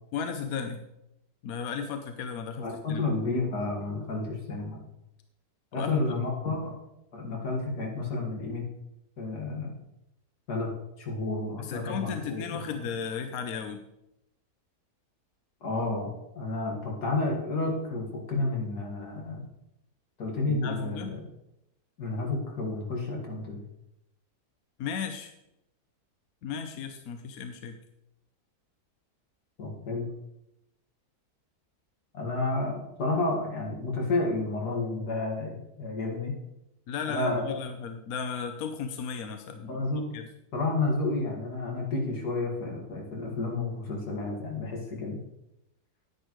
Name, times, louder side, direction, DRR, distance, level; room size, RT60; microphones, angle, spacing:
voice 1, 0.1-0.8 1.4-3.0 5.7-6.0 11.6-13.8 20.5-21.2 24.8-25.3 26.4-27.8 36.9-39.8 40.1-40.3, left 6 dB, 70° left, 6 dB, 1.1 m, -35 dB
voice 2, 2.6-4.8 5.7-6.7 7.1-8.6 9.2-9.7 10.5-10.7 11.0-12.8 15.6-19.4 20.2-21.2 22.0-23.6 29.6-30.1 32.1-36.4 37.0-37.6 39.7-40.1 40.5-45.2, left 2 dB, 85° left, -1 dB, 2.5 m, -31 dB
10.0 x 9.9 x 3.1 m, 0.86 s
omnidirectional pair, 1.7 m